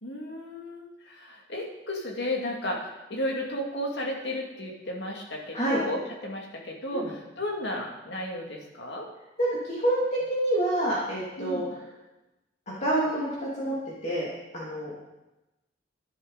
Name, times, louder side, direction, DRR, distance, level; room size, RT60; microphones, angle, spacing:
voice 1, 0.0-9.1 11.4-11.7, left 1 dB, 65° left, -1 dB, 2.3 m, -33 dB
voice 2, 9.4-11.6 12.7-13.8 14.0-14.3 14.5-14.9, right 1 dB, 40° left, -7 dB, 2.6 m, -27 dB
12.0 x 10.5 x 4.0 m, 1.0 s
head